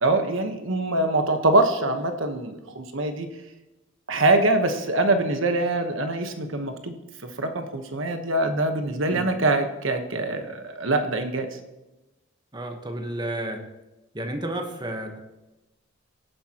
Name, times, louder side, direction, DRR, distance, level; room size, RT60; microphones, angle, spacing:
voice 1, 0.0-3.3 4.1-6.9 7.4-11.5, right 2 dB, 70° right, 6 dB, 1.2 m, -24 dB
voice 2, 12.5-13.6 14.1-15.2, right 1 dB, 20° right, 4 dB, 1.2 m, -31 dB
17.5 x 10.0 x 3.0 m, 1.0 s
head